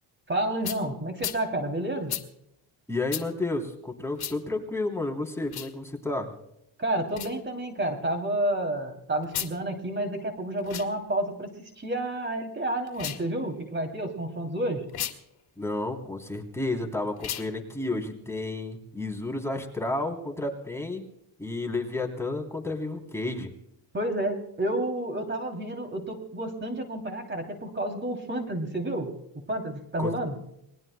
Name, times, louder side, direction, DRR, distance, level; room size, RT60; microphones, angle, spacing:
voice 1, 0.3-2.1 6.8-14.8 23.9-29.1 29.5-30.3, right 1 dB, 25° right, 4 dB, 2.9 m, -30 dB
sound 1, 0.6-0.8 1.2-1.4 2.1-2.2 3.1-3.3 4.2-4.4 5.4-5.7 7.1-7.3 9.2-9.5 10.6-10.9 12.9-13.3 14.9-15.2 17.2-17.5, left 10 dB, 60° left, 1.9 m, -34 dB
voice 2, 2.9-6.3 15.6-21.0 21.4-23.5 30.0-30.1, left 2 dB, 5° left, 1 dB, 3.2 m, -31 dB
28.5 x 21.0 x 2.2 m, 0.78 s
cardioid pair, 95°, 43 cm